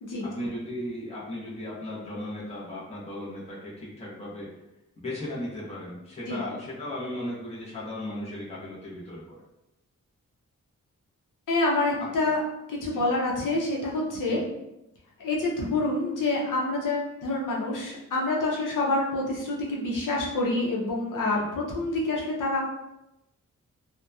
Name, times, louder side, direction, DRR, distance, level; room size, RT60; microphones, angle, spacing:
voice 1, 0.2-4.5 5.0-9.4 12.0-12.3 12.9-13.0 14.2-14.4 21.3-21.5, left 1 dB, 20° left, -7 dB, 0.7 m, -36 dB
voice 2, 11.5-12.4 12.7-14.4 15.2-22.6, left 2 dB, 75° left, -3 dB, 0.7 m, -27 dB
2.8 x 2.2 x 2.3 m, 0.89 s
wide cardioid pair, 135°, 31 cm